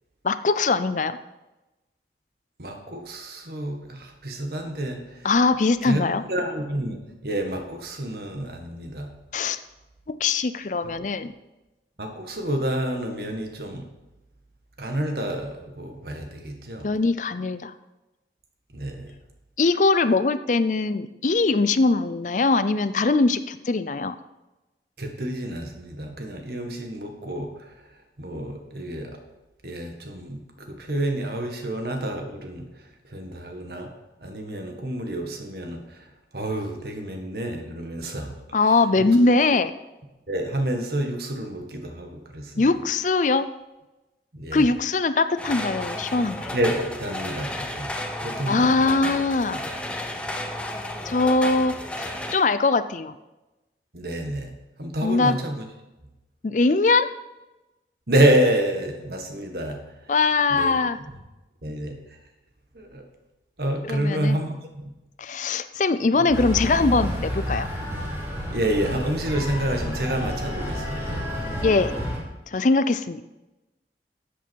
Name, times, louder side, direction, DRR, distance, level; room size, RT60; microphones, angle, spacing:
voice 1, 0.2-1.2 5.2-6.2 9.3-9.6 10.1-11.3 16.8-17.7 19.6-24.2 38.5-39.7 42.6-43.5 44.5-46.6 48.5-49.6 51.1-53.2 55.0-55.4 56.4-57.1 60.1-61.0 63.8-64.4 65.2-67.7 71.6-71.9 72.5-73.2, left 3 dB, 45° left, 13 dB, 0.5 m, -22 dB
voice 2, 2.6-5.3 5.8-6.0 6.3-9.1 10.8-11.1 12.0-13.9 14.8-16.9 18.7-19.1 25.0-27.7 28.2-29.2 29.6-32.7 33.1-33.9 34.2-36.1 36.3-38.3 38.6-39.1 40.3-42.6 44.3-44.7 46.5-47.9 48.2-49.1 49.5-49.7 53.9-54.5 54.8-55.6 58.1-59.8 60.5-60.7 61.6-62.0 62.7-63.0 63.6-64.5 64.8-64.9 66.2-66.4 68.5-71.2, right 1 dB, 60° right, 4 dB, 1.8 m, -28 dB
sound 1, 45.4-52.4, left 1 dB, 5° left, 0.9 m, -33 dB
sound 2, 66.3-72.2, equal, 15° right, 2.8 m, -30 dB
12.5 x 8.3 x 4.6 m, 1.0 s
head